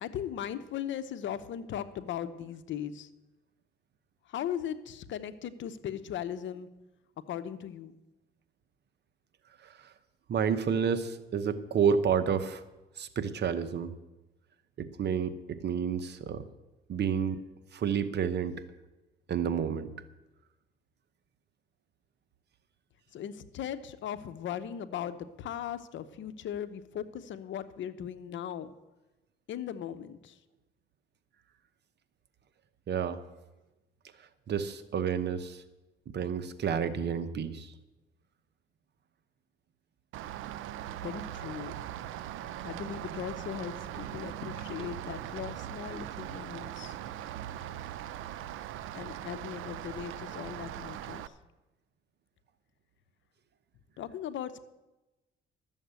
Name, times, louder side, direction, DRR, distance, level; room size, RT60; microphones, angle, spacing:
voice 1, 0.0-3.1 4.3-6.7 7.3-7.9 23.1-28.7 29.5-30.4 41.0-41.7 42.6-47.0 48.9-51.3 54.0-54.6, left 9 dB, 75° left, 12 dB, 0.9 m, -38 dB
voice 2, 9.6-9.9 10.3-12.6 13.0-13.9 14.8-16.4 16.9-17.4 17.7-18.6 19.3-19.9 32.9-33.2 34.5-35.6 36.1-37.7, right 7 dB, 60° right, 11 dB, 1.0 m, -30 dB
Rain, 40.1-51.3, right 12 dB, 85° right, 0.6 m, -40 dB
12.5 x 7.3 x 8.2 m, 1.0 s
cardioid pair, 90°, 20 cm